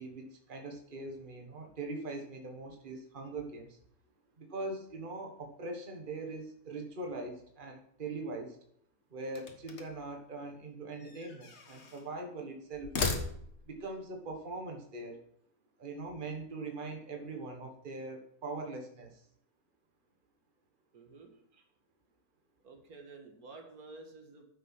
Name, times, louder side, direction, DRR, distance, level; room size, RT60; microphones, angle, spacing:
voice 1, 0.0-3.8 4.4-8.6 9.1-12.9 13.6-15.2 15.8-19.2, right 2 dB, 35° right, 2 dB, 1.6 m, -41 dB
sound 1, 9.3-10.1 11.0-12.1 12.7-13.8, left 4 dB, 50° left, 1.6 m, -37 dB
voice 2, 20.9-21.3 22.6-24.4, right 3 dB, 80° right, 3 dB, 2.2 m, -51 dB
9.8 x 7.4 x 6.1 m, 0.67 s
omnidirectional pair, 1.5 m